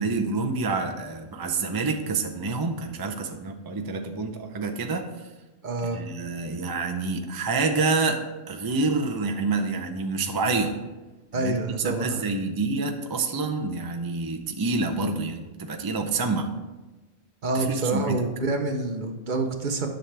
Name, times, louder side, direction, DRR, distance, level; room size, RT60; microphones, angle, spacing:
voice 1, 0.0-5.3 5.9-10.8 11.3-16.5 17.5-18.2, right 3 dB, 30° right, 3 dB, 0.4 m, -27 dB
voice 2, 5.6-6.0 11.3-12.2 17.4-19.9, right 3 dB, 45° right, 5 dB, 0.8 m, -27 dB
10.5 x 6.3 x 3.3 m, 1.2 s
omnidirectional pair, 1.2 m